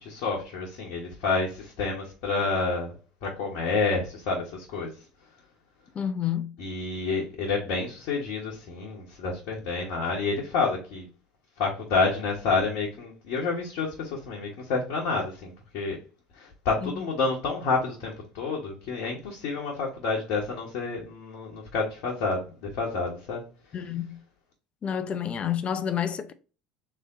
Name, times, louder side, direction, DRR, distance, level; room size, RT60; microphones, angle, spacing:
voice 1, 0.0-2.9 3.2-4.9 6.6-11.1 11.6-16.0 16.4-23.4, left 4 dB, 55° left, 1.1 m, -29 dB
voice 2, 5.9-6.5 16.8-17.0 23.7-24.2 24.8-26.3, left 9 dB, 35° left, 0.5 m, -29 dB
3.6 x 3.0 x 3.7 m
figure-of-eight pair, 65°, 3 cm